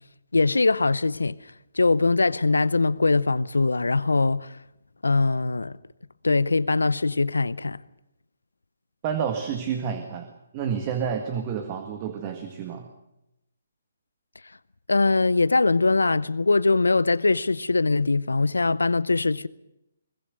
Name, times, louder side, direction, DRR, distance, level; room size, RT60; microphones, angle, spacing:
voice 1, 0.3-1.4 1.7-4.5 5.0-5.8 6.2-7.8 14.9-19.5, left 3 dB, 85° left, 0.7 m, -22 dB
voice 2, 9.0-10.3 10.5-12.9, right 7 dB, 30° right, 1.9 m, -29 dB
23.0 x 20.5 x 6.5 m
figure-of-eight pair, 145°, 0 cm